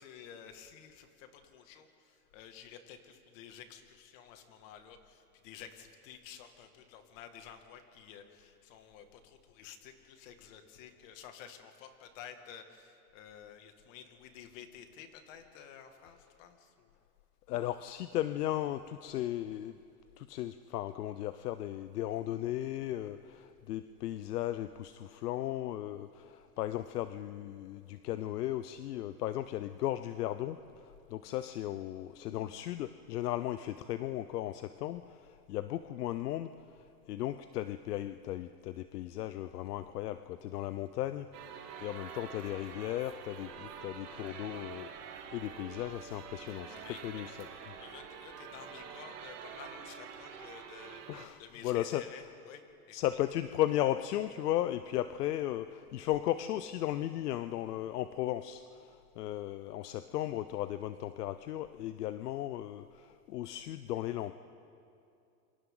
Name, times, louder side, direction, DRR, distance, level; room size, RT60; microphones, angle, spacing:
voice 1, 0.0-16.9 46.6-47.2 47.7-51.0 51.4-53.2, left 8 dB, 55° left, 6 dB, 2.3 m, -52 dB
voice 2, 17.5-19.8 20.2-36.5 37.1-46.8 47.0-47.5 51.1-52.0 52.9-64.3, left 13 dB, 80° left, 11 dB, 0.8 m, -36 dB
sound 1, 41.3-51.3, right 7 dB, 85° right, 2.7 m, -47 dB
28.0 x 25.5 x 4.0 m, 2.6 s
supercardioid pair, 135°, 46 cm